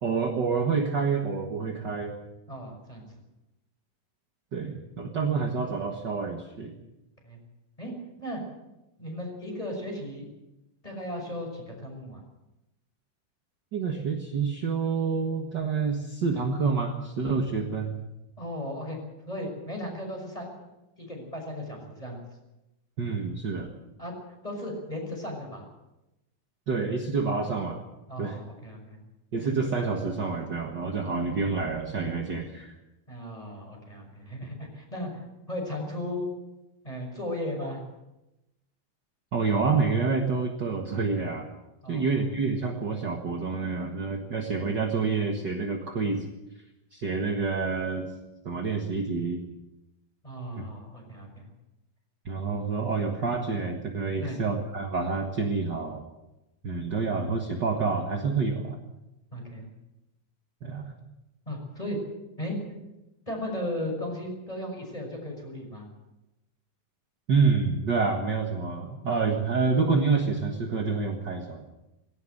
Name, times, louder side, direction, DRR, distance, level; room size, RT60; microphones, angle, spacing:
voice 1, 0.0-2.2 4.5-6.7 13.7-17.9 23.0-23.7 26.7-27.8 28.2-28.4 29.3-32.7 39.3-41.5 41.9-46.2 46.9-48.1 48.4-49.4 50.6-50.7 52.2-56.0 56.6-58.8 60.6-60.9 67.3-71.6, right 4 dB, 45° right, 2 dB, 1.4 m, -28 dB
voice 2, 2.5-3.0 7.2-7.4 7.8-7.9 8.2-8.4 9.0-10.3 10.8-12.2 18.4-19.0 19.3-20.5 21.0-22.2 24.0-24.1 24.4-25.6 28.1-29.0 33.1-36.3 36.8-37.8 41.8-42.2 50.2-51.4 54.2-54.4 59.3-59.7 61.5-62.0 62.4-62.8 63.3-65.8, left 1 dB, 10° left, 1 dB, 5.8 m, -36 dB
19.0 x 17.0 x 7.9 m, 0.96 s
omnidirectional pair, 4.2 m